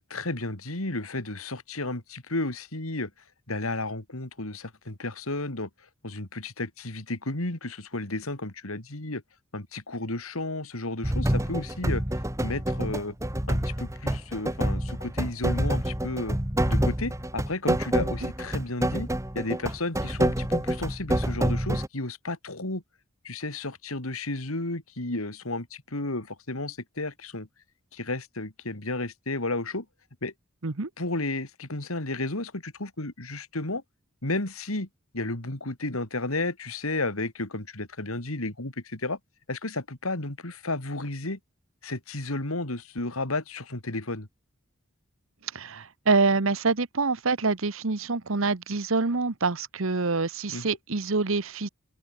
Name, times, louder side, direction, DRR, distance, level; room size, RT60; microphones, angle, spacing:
voice 1, 0.0-3.1 3.5-5.7 6.0-9.2 9.5-12.0 12.4-13.2 13.5-16.4 16.7-19.1 19.3-22.8 23.2-27.5 27.9-29.9 30.2-30.3 31.0-33.8 34.2-34.9 35.1-39.2 39.5-41.4 41.8-44.3 50.5-50.7, left 2 dB, 85° left, 3.4 m, -32 dB
sound 1, 11.0-21.9, right 1 dB, 15° right, 2.5 m, -27 dB
voice 2, 45.5-51.7, right 4 dB, 65° right, 1.1 m, -26 dB
open air
head